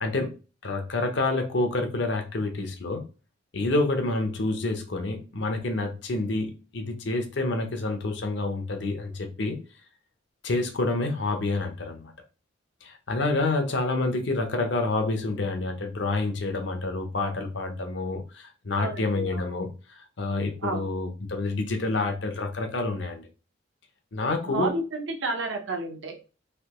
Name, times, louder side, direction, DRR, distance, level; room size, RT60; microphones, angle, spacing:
voice 1, 0.0-0.3 0.6-3.0 3.5-9.6 10.4-12.1 12.8-23.3 24.1-24.7, left 2 dB, 65° left, 0.7 m, -28 dB
voice 2, 18.8-19.4 20.6-20.8 24.4-26.3, right 2 dB, 70° right, 0.8 m, -31 dB
3.3 x 2.8 x 2.9 m
head